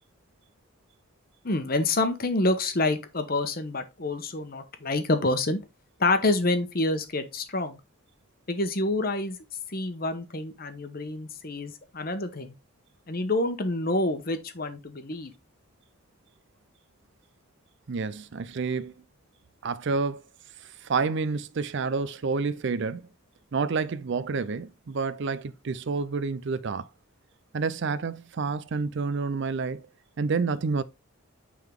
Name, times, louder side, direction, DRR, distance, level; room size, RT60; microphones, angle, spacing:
voice 1, 1.4-5.6 6.0-7.8 8.5-9.4 9.7-12.5 13.1-15.3, left 2 dB, 40° left, 1.0 m, -27 dB
voice 2, 17.9-18.9 19.6-20.2 20.6-23.1 23.5-26.9 27.5-29.9 30.2-30.8, right 4 dB, 55° right, 0.4 m, -29 dB
9.1 x 3.8 x 3.6 m
head